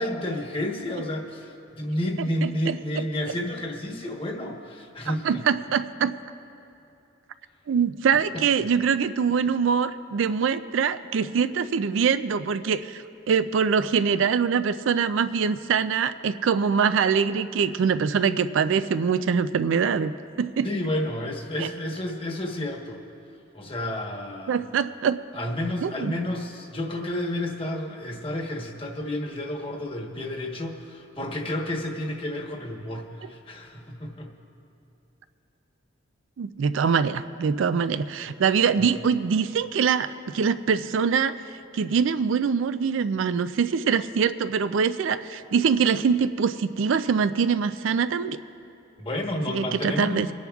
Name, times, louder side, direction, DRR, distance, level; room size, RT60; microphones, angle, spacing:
voice 1, 0.0-5.4 8.1-8.2 20.6-23.0 23.5-24.6 25.3-34.3 38.8-38.9 49.0-50.3, left 1 dB, 25° left, 1 dB, 1.1 m, -31 dB
voice 2, 2.4-2.8 5.1-6.1 7.7-20.1 20.4-20.7 21.6-21.7 24.5-25.2 25.8-26.2 36.4-41.3 41.7-48.4 49.5-50.3, right 6 dB, 75° right, 12 dB, 0.4 m, -24 dB
27.5 x 10.5 x 2.4 m, 2.9 s
head